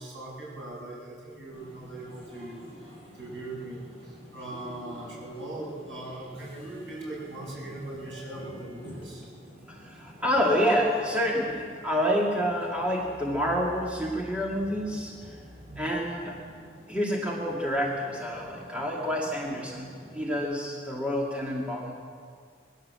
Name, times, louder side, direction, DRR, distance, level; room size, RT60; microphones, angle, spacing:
voice 1, 0.0-2.9 3.1-9.3 15.7-15.9, right 2 dB, 75° right, -5 dB, 7.9 m, -40 dB
sound 1, 1.5-20.4, equal, 30° right, 7.2 m, -49 dB
voice 2, 9.7-15.3 15.8-16.4 16.9-21.9, equal, 5° right, -3 dB, 2.4 m, -28 dB
21.5 x 16.5 x 7.7 m, 2.1 s
head